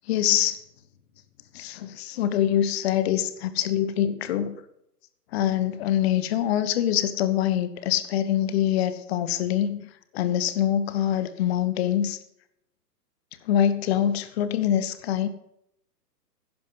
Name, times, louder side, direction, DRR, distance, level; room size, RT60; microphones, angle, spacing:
voice 1, 0.1-0.6 1.5-4.6 5.3-9.8 10.1-12.2 13.4-15.3, left 11 dB, 40° left, 13 dB, 1.2 m, -24 dB
11.0 x 10.5 x 5.5 m, 0.76 s
hypercardioid pair, 130°, 49 cm